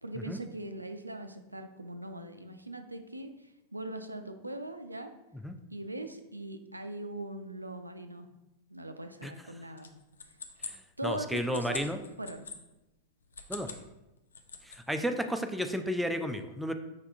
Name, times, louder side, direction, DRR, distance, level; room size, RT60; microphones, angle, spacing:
voice 1, 0.0-5.1 5.7-8.3 8.7-9.9 11.0-11.9 12.2-12.5, right 1 dB, 85° right, 7 dB, 0.3 m, -40 dB
sound 1, 9.8-12.6 13.2-13.9 14.2-15.0, left 5 dB, 70° left, 0.4 m, -44 dB
voice 2, 10.6-12.0 13.5-13.7 14.6-16.7, equal, ahead, 6 dB, 0.3 m, -33 dB
5.5 x 3.4 x 2.5 m, 0.96 s
figure-of-eight pair, 90°, 0 cm